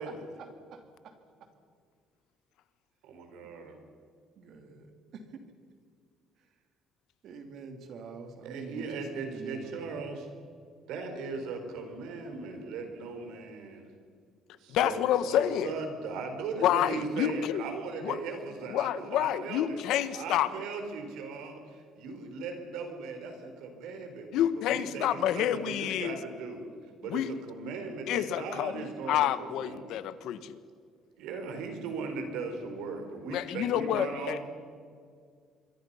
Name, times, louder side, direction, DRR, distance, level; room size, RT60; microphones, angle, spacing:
voice 1, 0.4-1.5 4.4-5.5 7.2-10.0, right 4 dB, 65° right, 6 dB, 3.1 m, -46 dB
voice 2, 3.0-3.8 8.4-10.3 10.8-13.9 14.6-19.8 20.1-26.6 27.0-29.9 31.2-34.4, right 4 dB, 85° right, 5 dB, 4.6 m, -38 dB
voice 3, 14.7-15.7 16.6-17.6 18.0-18.2 18.7-20.5 24.3-26.1 27.1-27.3 28.1-30.6 33.3-34.4, left 11 dB, 75° left, 14 dB, 1.3 m, -28 dB
27.0 x 23.0 x 5.7 m, 2.1 s
cardioid pair, 110°, 0 cm